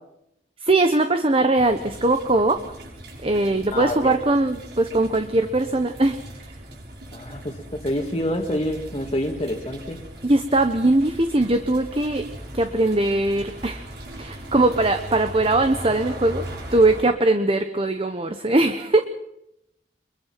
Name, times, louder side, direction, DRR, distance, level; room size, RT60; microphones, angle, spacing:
voice 1, 0.6-2.6 3.2-6.2 10.2-12.2 12.5-13.8 14.2-19.0, right 2 dB, 30° right, 8 dB, 1.1 m, -20 dB
sound 1, 1.6-17.0, right 1 dB, 65° right, 6.5 m, -39 dB
voice 2, 3.7-4.1 7.1-10.0, left 1 dB, 30° left, 0 dB, 2.1 m, -27 dB
24.5 x 22.5 x 5.9 m, 0.79 s
head